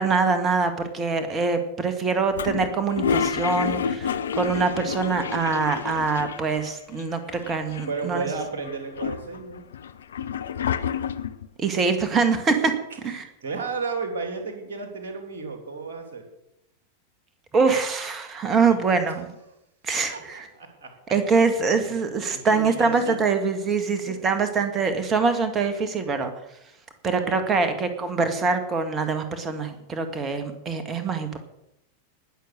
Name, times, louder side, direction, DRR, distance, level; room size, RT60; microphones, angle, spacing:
voice 1, 0.0-8.3 11.6-12.7 13.0-13.2 17.5-19.3 19.8-20.5 21.1-26.3 27.0-31.4, right 4 dB, 25° right, 8 dB, 1.9 m, -24 dB
Toilet flush, 2.3-6.7 7.0-7.1 7.3-8.1 8.6-11.5, left 7 dB, 65° left, 0.7 m, -29 dB
voice 2, 7.9-9.6 11.8-12.1 12.6-12.7 13.0-16.2 18.6-19.5 20.1-20.9 21.7-22.0 22.3-23.2 24.1-24.2 27.1-27.6, right 4 dB, 60° right, 5 dB, 3.0 m, -34 dB
19.5 x 6.9 x 6.5 m, 0.84 s
figure-of-eight pair, 90°, 0 cm